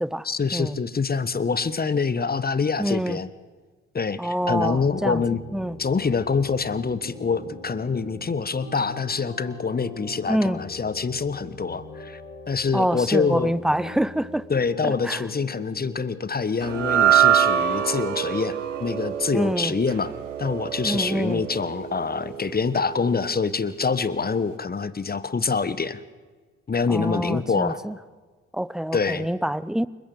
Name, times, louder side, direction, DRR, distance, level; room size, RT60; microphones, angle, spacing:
voice 1, 0.2-3.3 3.9-5.4 5.8-12.2 12.5-13.5 14.5-20.1 20.4-26.0 26.7-27.8 28.9-29.3, left 5 dB, 25° left, 1.3 m, -25 dB
voice 2, 2.8-3.2 4.2-5.2 5.5-5.8 10.3-10.6 12.7-14.4 14.8-15.2 19.3-19.8 20.8-21.4 26.9-27.9 28.5-29.9, right 1 dB, ahead, 0.7 m, -26 dB
sound 1, 4.4-16.2, left 2 dB, 80° left, 3.5 m, -41 dB
sound 2, 16.6-23.0, right 10 dB, 85° right, 1.0 m, -24 dB
28.5 x 15.0 x 8.1 m
figure-of-eight pair, 45°, 37 cm